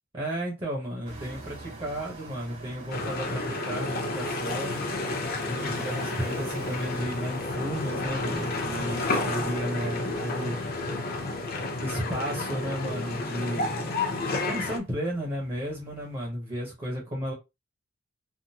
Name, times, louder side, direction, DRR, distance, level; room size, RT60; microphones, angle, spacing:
voice 1, 0.1-4.9 5.4-10.6 11.8-17.3, equal, 30° right, 1.0 m, -33 dB
sound 1, 1.0-16.3, right 3 dB, 70° right, 1.7 m, -46 dB
sound 2, 2.9-14.8, left 2 dB, 45° left, 0.7 m, -31 dB
3.6 x 2.1 x 2.8 m
head